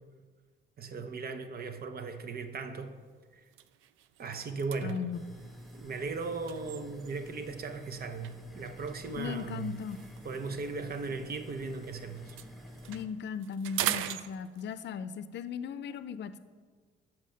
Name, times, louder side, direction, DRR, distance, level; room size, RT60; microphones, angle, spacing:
voice 1, 0.8-2.9 3.3-3.4 4.2-5.0 5.7-9.8 10.2-12.4, right 4 dB, 50° right, 8 dB, 0.9 m, -37 dB
sound 1, 2.3-2.5 3.0-3.1 3.4-7.4 8.2-11.8 12.1-14.9, right 12 dB, 85° right, 0.4 m, -41 dB
voice 2, 4.8-5.2 9.2-10.0 12.9-16.4, left 6 dB, 60° left, 13 dB, 0.5 m, -37 dB
sound 2, 5.1-13.1, equal, ahead, 1.3 m, -49 dB
7.4 x 6.0 x 6.4 m, 1.6 s
cardioid pair, 90°, 20 cm